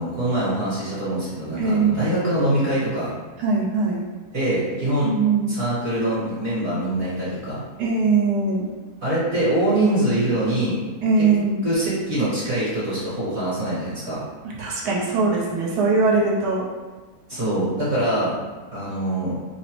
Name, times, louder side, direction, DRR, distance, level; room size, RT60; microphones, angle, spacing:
voice 1, 0.0-3.1 4.3-5.1 5.5-7.6 9.0-10.8 11.2-11.3 11.6-14.2 17.3-18.4 18.7-19.4, right 1 dB, 45° right, -10 dB, 1.1 m, -23 dB
voice 2, 1.6-2.1 3.4-4.0 5.0-5.5 7.8-8.7 11.0-11.6 14.6-16.6, right 4 dB, 75° right, -4 dB, 1.2 m, -21 dB
2.9 x 2.0 x 2.9 m, 1.3 s
omnidirectional pair, 1.8 m